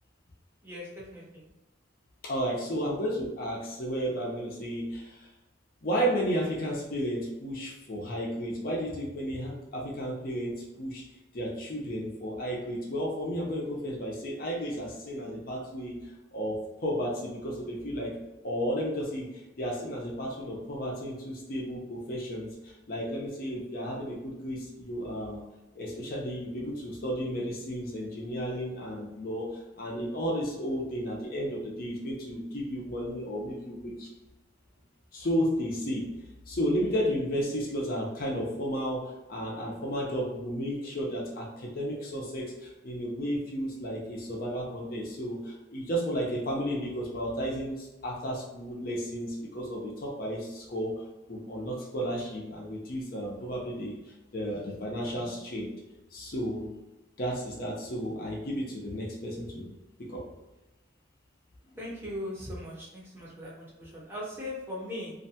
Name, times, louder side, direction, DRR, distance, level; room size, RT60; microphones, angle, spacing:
voice 1, 0.6-1.4 61.8-65.1, left 1 dB, 10° right, -6 dB, 0.6 m, -39 dB
voice 2, 2.2-5.3 5.8-11.0 11.3-16.0 16.3-18.1 18.4-19.3 19.6-25.4 25.7-34.1 35.1-36.1 36.5-50.9 51.3-54.0 54.3-55.7 56.1-56.7 57.2-59.7 60.0-60.2, equal, 50° left, -3 dB, 0.5 m, -33 dB
2.5 x 2.2 x 2.7 m, 1.0 s
head